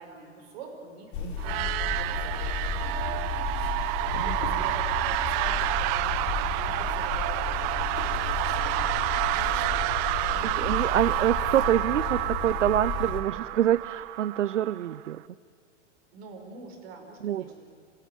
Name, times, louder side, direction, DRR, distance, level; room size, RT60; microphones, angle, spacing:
voice 1, 0.0-9.9 10.2-11.1 16.1-17.7, right 4 dB, 55° right, 3 dB, 5.5 m, -46 dB
sound 1, 1.1-13.2, left 6 dB, 45° left, 3.4 m, -33 dB
sound 2, 1.4-15.1, right 18 dB, 35° right, 0.5 m, -29 dB
voice 2, 4.1-4.6 10.6-15.2 17.2-17.4, right 11 dB, 75° right, 17 dB, 0.6 m, -26 dB
27.5 x 16.0 x 9.2 m, 2.3 s
hypercardioid pair, 105°, 37 cm